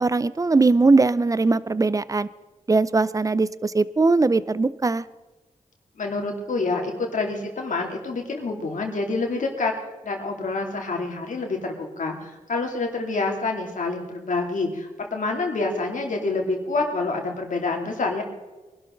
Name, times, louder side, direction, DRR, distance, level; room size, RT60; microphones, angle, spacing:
voice 1, 0.0-2.3 2.7-5.0, right 3 dB, 25° right, 17 dB, 0.5 m, -20 dB
voice 2, 6.0-9.7 10.0-18.2, left 3 dB, 75° left, 1 dB, 2.9 m, -27 dB
23.0 x 12.0 x 3.9 m, 1.2 s
cardioid pair, 70°, 13 cm